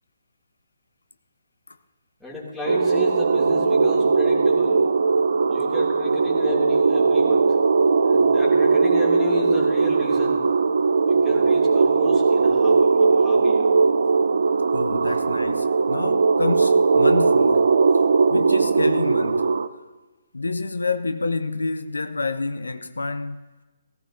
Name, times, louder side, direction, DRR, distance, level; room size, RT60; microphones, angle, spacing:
voice 1, 2.2-4.8 5.5-7.6 8.0-10.4 11.1-13.7, left 3 dB, ahead, 2.7 m, -33 dB
sound 1, 2.7-19.7, right 4 dB, 65° right, 0.5 m, -19 dB
voice 2, 14.7-17.8 18.3-19.5 20.3-23.4, left 3 dB, 80° left, 0.6 m, -28 dB
16.5 x 15.5 x 2.7 m
figure-of-eight pair, 140°, 0 cm